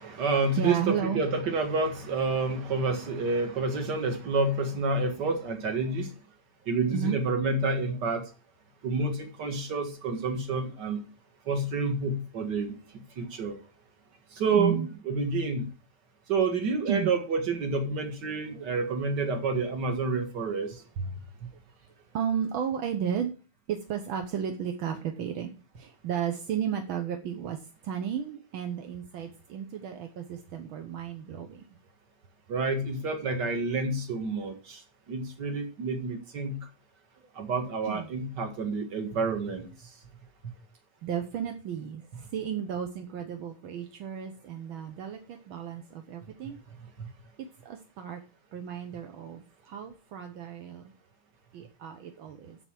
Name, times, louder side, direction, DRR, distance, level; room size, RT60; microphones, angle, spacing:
voice 1, 0.0-6.1 6.7-8.2 8.8-11.0 11.5-12.8 13.2-13.5 14.4-15.7 16.3-20.7 32.5-34.8 35.1-36.6 37.4-39.7 47.0-47.1, right 3 dB, 40° right, 6 dB, 2.1 m, -29 dB
voice 2, 0.5-1.2 6.9-7.2 14.5-14.9 16.9-17.1 18.5-18.7 19.3-19.4 21.0-21.3 21.8-21.9 22.1-23.3 23.7-31.6 37.8-38.1 41.0-46.6 47.6-48.2 48.5-50.9 51.5-52.6, right 8 dB, 60° right, 6 dB, 1.4 m, -33 dB
8.1 x 6.9 x 7.5 m, 0.36 s
omnidirectional pair, 3.3 m